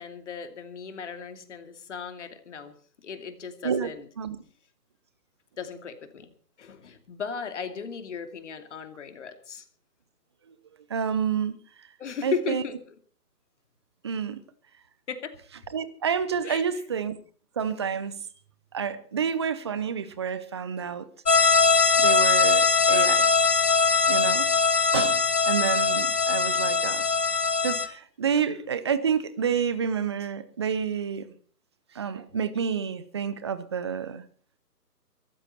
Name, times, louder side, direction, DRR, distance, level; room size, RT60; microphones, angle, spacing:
voice 1, 0.0-2.7 3.0-4.0 5.6-6.3 6.6-9.6 12.0-12.7 15.1-15.3 16.4-16.6 22.9-23.2, left 6 dB, 45° left, 8 dB, 2.8 m, -36 dB
voice 2, 10.9-11.6 12.2-12.6 14.0-14.4 15.7-17.2 17.6-18.2 18.7-21.1 22.0-23.3 24.1-24.5 24.9-27.1 27.6-31.3 31.9-34.2, right 7 dB, 15° right, 14 dB, 0.7 m, -29 dB
sound 1, 21.3-27.9, left 4 dB, 70° left, 2.3 m, -21 dB
22.5 x 14.0 x 4.3 m, 0.42 s
figure-of-eight pair, 140°, 49 cm